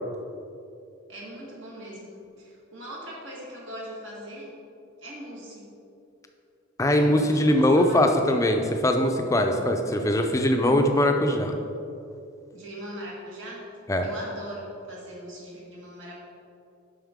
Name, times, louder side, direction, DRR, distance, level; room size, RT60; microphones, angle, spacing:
voice 1, 1.1-4.5 5.0-5.7 6.9-8.4 12.5-13.7 14.0-16.2, equal, 65° right, -3 dB, 1.6 m, -40 dB
voice 2, 6.8-11.5 13.9-14.1, left 1 dB, 15° left, 4 dB, 0.4 m, -21 dB
7.3 x 5.5 x 3.6 m, 2.6 s
head